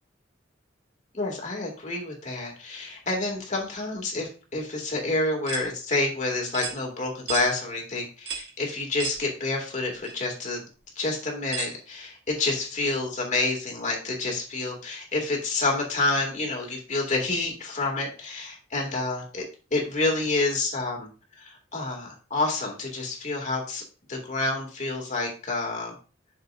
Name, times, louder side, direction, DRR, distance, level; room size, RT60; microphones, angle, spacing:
voice 1, 1.1-10.6 11.0-19.4 19.7-21.1 21.4-23.8 24.1-25.9, left 2 dB, 40° left, 1 dB, 2.4 m, -28 dB
sound 1, 5.5-5.7 6.5-6.8 7.3-7.5 8.3-8.5 9.0-9.2 10.0-10.1 11.5-11.7, right 7 dB, 60° right, 1.7 m, -33 dB
11.0 x 6.6 x 2.6 m, 0.35 s
head